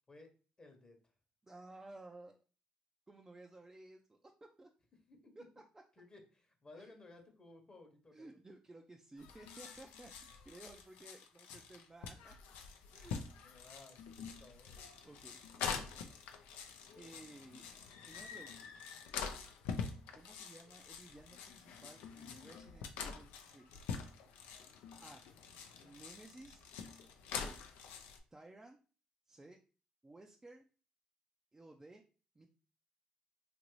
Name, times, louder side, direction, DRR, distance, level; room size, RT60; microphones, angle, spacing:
voice 1, 0.6-1.1 5.1-5.3 6.0-8.3 13.4-14.9 15.6-15.7, left 2 dB, 30° left, 4 dB, 0.9 m, -58 dB
voice 2, 1.4-2.4 3.1-4.3 4.6-4.7 5.4-5.8 6.7-6.9 8.1-10.1 10.4-12.3 12.9-13.5 15.0-16.0 16.9-17.6 18.0-18.5 20.2-23.7 25.0-25.2 25.8-26.7 27.3-27.6 28.3-28.8 29.3-29.6 30.0-30.6 31.5-32.0 32.4-32.5, right 2 dB, 20° right, 2 dB, 0.4 m, -56 dB
sound 1, 9.2-28.2, left 6 dB, 80° left, 0.4 m, -46 dB
2.9 x 2.5 x 3.0 m, 0.37 s
supercardioid pair, 65°, 3 cm